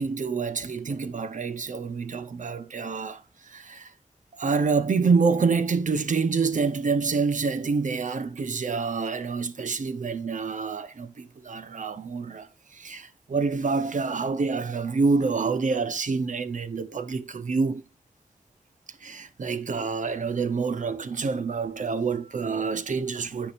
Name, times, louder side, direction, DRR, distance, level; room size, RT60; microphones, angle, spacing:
voice 1, 0.0-3.9 4.4-17.8 19.0-23.5, right 4 dB, 75° right, 1.1 m, -27 dB
15.5 x 5.2 x 2.7 m
wide cardioid pair, 95°, 13 cm